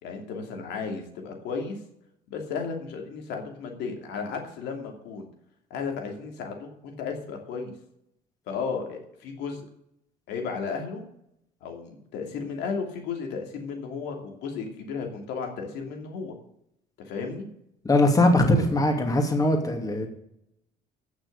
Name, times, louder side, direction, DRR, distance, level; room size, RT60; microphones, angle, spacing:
voice 1, 0.0-1.8 2.3-5.3 5.7-7.7 8.5-9.6 10.3-11.0 11.6-16.4 17.1-17.4, left 5 dB, 85° left, 3 dB, 2.8 m, -34 dB
voice 2, 17.8-20.1, left 1 dB, 20° left, 3 dB, 2.6 m, -21 dB
15.0 x 6.4 x 6.8 m, 0.77 s
cardioid pair, 110°, 17 cm